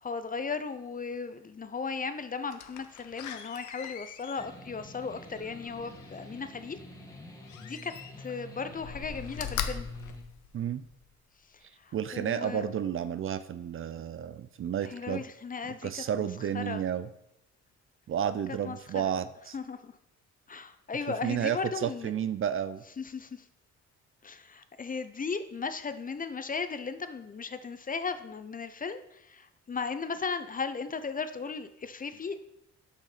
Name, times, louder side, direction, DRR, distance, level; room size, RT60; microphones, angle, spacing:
voice 1, 0.0-6.8 7.6-7.9 8.2-9.9 11.8-12.7 14.9-16.3 16.5-16.8 18.6-19.1 19.5-19.9 20.5-22.1 23.0-23.4 24.2-32.4, left 5 dB, 30° left, 11 dB, 0.6 m, -36 dB
Slam, 2.5-6.3 7.5-8.4 8.8-11.0 11.5-11.6, left 8 dB, 75° left, 0.8 m, -41 dB
sound 1, 4.4-10.2, left 1 dB, 10° left, 1.4 m, -47 dB
voice 2, 11.9-15.2 15.8-17.1 18.1-19.6 21.2-22.8, right 9 dB, 45° right, 12 dB, 0.5 m, -31 dB
6.5 x 5.6 x 5.0 m, 0.81 s
cardioid pair, 90°, 30 cm